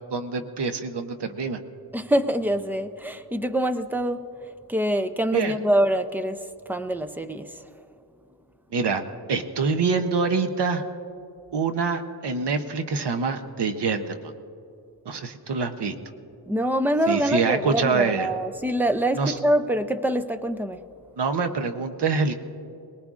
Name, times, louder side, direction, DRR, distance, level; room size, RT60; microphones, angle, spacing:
voice 1, 0.1-1.6 5.3-5.5 8.7-9.0 9.3-10.8 11.5-14.3 15.1-15.9 17.1-18.3 19.2-19.3 21.2-22.3, right 4 dB, 70° right, 7 dB, 0.8 m, -25 dB
voice 2, 1.9-4.3 4.7-7.6 16.5-20.8, right 1 dB, 5° right, 9 dB, 0.4 m, -25 dB
22.5 x 20.0 x 2.4 m, 2.7 s
wide cardioid pair, 180°, 43 cm